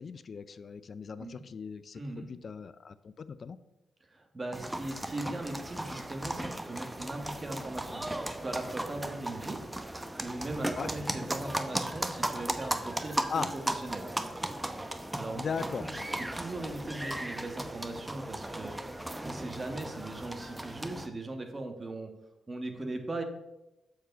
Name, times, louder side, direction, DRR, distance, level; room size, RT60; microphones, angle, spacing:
voice 1, 0.0-3.6 10.8-10.9 13.3-13.5 15.3-16.1, left 5 dB, 55° left, 14 dB, 0.4 m, -38 dB
voice 2, 1.9-2.3 4.1-9.6 10.0-13.2 13.7-14.1 15.2-15.4 15.8-18.8 19.2-22.1 22.5-23.2, right 2 dB, 35° right, 5 dB, 1.5 m, -39 dB
sound 1, 4.5-21.1, right 1 dB, 10° right, 0.8 m, -36 dB
7.3 x 4.8 x 5.3 m, 0.94 s
supercardioid pair, 45°, 0 cm